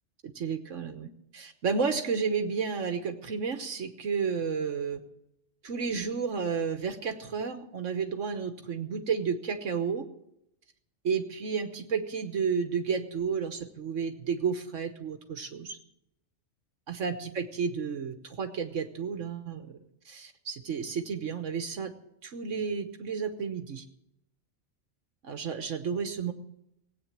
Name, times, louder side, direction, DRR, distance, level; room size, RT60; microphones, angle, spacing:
voice 1, 0.2-5.0 5.6-10.0 11.0-15.8 16.9-19.7 20.0-21.9 22.2-23.8 25.2-26.3, right 6 dB, 75° right, 7 dB, 1.4 m, -32 dB
18.5 x 8.7 x 7.4 m, 0.81 s
omnidirectional pair, 1.3 m